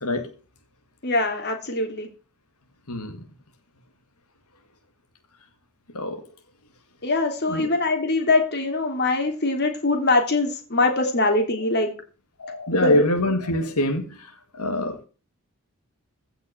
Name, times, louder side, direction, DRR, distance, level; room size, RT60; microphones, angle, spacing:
voice 1, 0.0-0.3 2.9-3.3 5.9-6.2 7.5-7.7 11.2-11.3 12.4-15.0, left 1 dB, 90° left, 2.1 m, -25 dB
voice 2, 1.0-2.1 7.0-11.9 12.7-13.0, left 2 dB, 50° left, 3.0 m, -22 dB
15.5 x 6.1 x 6.9 m
head